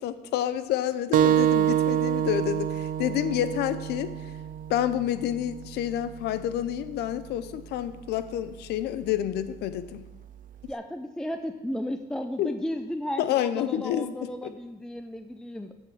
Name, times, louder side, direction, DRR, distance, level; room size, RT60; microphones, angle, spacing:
voice 1, 0.0-4.1 4.7-10.1 12.4-12.5 13.2-14.1 14.4-14.5, left 11 dB, 80° left, 13 dB, 0.6 m, -29 dB
sound 1, 1.1-6.3, right 10 dB, 50° right, 0.5 m, -26 dB
voice 2, 10.7-15.7, equal, 5° left, 7 dB, 0.4 m, -34 dB
7.4 x 6.5 x 6.2 m, 1.1 s
cardioid pair, 110°, 17 cm